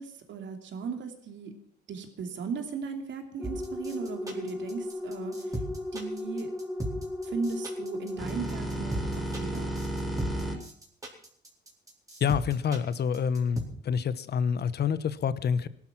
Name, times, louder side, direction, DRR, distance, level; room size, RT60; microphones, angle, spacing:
voice 1, 0.0-1.5 1.9-5.6 5.9-6.5 7.2-9.7, right 5 dB, 65° right, 5 dB, 2.9 m, -37 dB
sound 1, 3.4-10.6, equal, ahead, 4.8 m, -34 dB
sound 2, 3.4-13.6, right 1 dB, 15° right, 4.4 m, -37 dB
voice 2, 12.2-15.7, left 7 dB, 55° left, 15 dB, 1.1 m, -27 dB
17.5 x 12.0 x 6.0 m, 0.62 s
cardioid pair, 90°, 20 cm